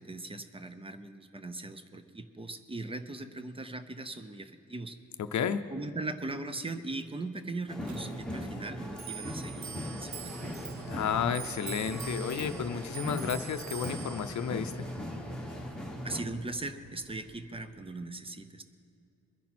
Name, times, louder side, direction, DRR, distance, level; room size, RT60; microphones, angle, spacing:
voice 1, 0.0-5.0 5.7-10.4 16.0-18.6, right 2 dB, 20° right, 10 dB, 0.6 m, -39 dB
voice 2, 5.2-5.7 10.9-14.7, left 7 dB, 65° left, 9 dB, 0.6 m, -32 dB
sound 1, 7.7-16.2, equal, ahead, 1.2 m, -39 dB
Clock, 7.9-17.7, right 7 dB, 65° right, 0.6 m, -46 dB
22.0 x 10.5 x 4.3 m, 2.7 s
wide cardioid pair, 170°, 31 cm